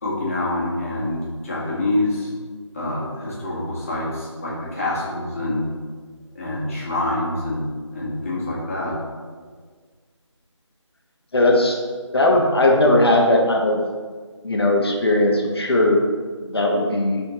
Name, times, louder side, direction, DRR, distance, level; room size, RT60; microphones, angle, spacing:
voice 1, 0.0-2.3 2.7-5.7 6.3-9.0, left 1 dB, 30° left, -6 dB, 1.7 m, -26 dB
voice 2, 11.3-11.8 12.1-13.8 14.4-16.0 16.5-17.2, left 1 dB, 55° left, 0 dB, 1.3 m, -18 dB
11.0 x 4.3 x 3.0 m, 1.5 s
figure-of-eight pair, 170°, 16 cm